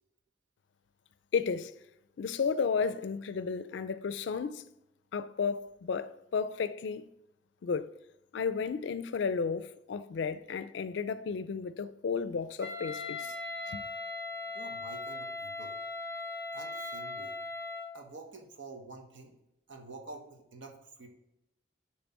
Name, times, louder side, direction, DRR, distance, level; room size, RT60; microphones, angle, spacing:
voice 1, 1.3-1.7 2.2-4.6 5.1-7.1 7.6-7.9 8.3-13.3 13.7-13.8, left 5 dB, 70° left, 0.4 m, -33 dB
Wind instrument woodwind instrument, 12.6-18.0, left 2 dB, 15° right, 0.7 m, -39 dB
voice 2, 14.5-15.7 16.5-17.4 17.9-19.4 19.7-21.1, right 3 dB, 85° right, 1.1 m, -48 dB
6.9 x 3.2 x 4.2 m
head